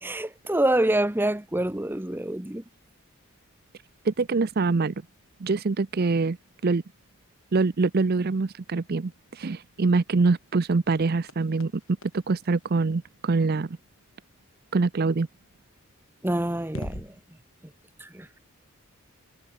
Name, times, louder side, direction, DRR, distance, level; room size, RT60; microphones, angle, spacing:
voice 1, 0.0-2.6 16.2-17.1 18.0-18.3, right 1 dB, 10° right, 0.8 m, -26 dB
voice 2, 4.0-4.9 5.4-6.4 6.6-6.8 7.5-11.7 12.1-13.8 14.7-15.3, right 3 dB, 45° right, 0.5 m, -24 dB
sound 1, 8.9-13.6 15.8-15.9 16.6-17.2, left 1 dB, 65° left, 5.9 m, -44 dB
head